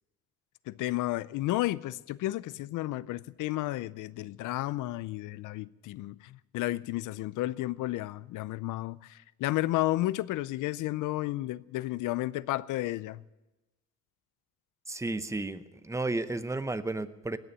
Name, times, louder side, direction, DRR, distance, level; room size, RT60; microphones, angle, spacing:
voice 1, 0.7-13.2, left 17 dB, 85° left, 0.5 m, -32 dB
voice 2, 14.9-17.4, right 2 dB, 10° right, 0.8 m, -33 dB
18.5 x 7.1 x 9.0 m
cardioid pair, 90°, 30 cm